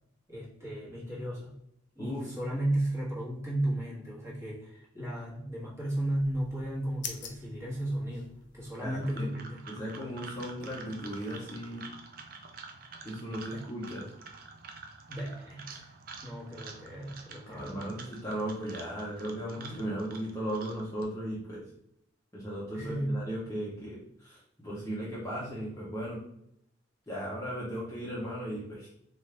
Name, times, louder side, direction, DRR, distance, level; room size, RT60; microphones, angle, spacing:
voice 1, 0.3-1.5 1.9-9.6 13.5-13.6 15.1-15.9 16.2-18.0 22.7-23.2, right 1 dB, 15° right, -5 dB, 1.3 m, -34 dB
voice 2, 2.0-2.3 8.8-9.3 9.7-11.9 13.0-14.0 17.5-21.6 22.3-26.2 27.1-28.9, equal, 15° left, -7 dB, 0.8 m, -36 dB
sound 1, 5.9-8.7, left 7 dB, 60° left, 0.5 m, -46 dB
sound 2, 8.7-21.0, right 4 dB, 45° right, 0.5 m, -48 dB
4.2 x 2.4 x 3.3 m, 0.76 s
head